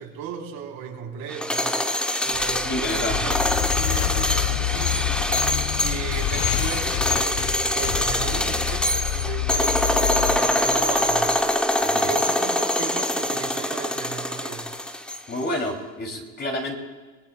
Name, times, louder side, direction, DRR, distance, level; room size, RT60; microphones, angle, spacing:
voice 1, 0.0-1.8 2.2-3.4 3.7-5.1 5.8-11.4 11.9-14.7, right 7 dB, 50° right, 0 dB, 3.5 m, -35 dB
sound 1, 1.3-15.4, left 1 dB, ahead, 0.5 m, -24 dB
sound 2, 2.3-11.5, left 15 dB, 50° left, 0.5 m, -28 dB
voice 2, 2.6-3.3 11.8-12.1 15.3-16.8, left 1 dB, 20° left, 2 dB, 2.7 m, -29 dB
26.5 x 19.5 x 2.2 m, 1.3 s
supercardioid pair, 115°, 44 cm